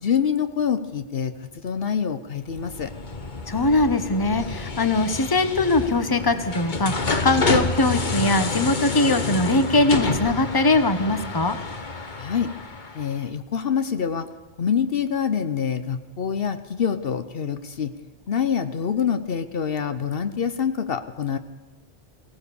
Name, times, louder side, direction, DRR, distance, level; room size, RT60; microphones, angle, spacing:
voice 1, 0.0-2.9 12.2-12.5 12.9-14.3 14.6-17.9 18.3-21.4, left 7 dB, 65° left, 10 dB, 1.1 m, -26 dB
sound 1, 2.4-13.2, left 3 dB, 50° left, 1.4 m, -28 dB
voice 2, 3.5-11.6, left 2 dB, 20° left, 10 dB, 1.1 m, -21 dB
23.0 x 16.5 x 7.0 m, 1.2 s
omnidirectional pair, 1.0 m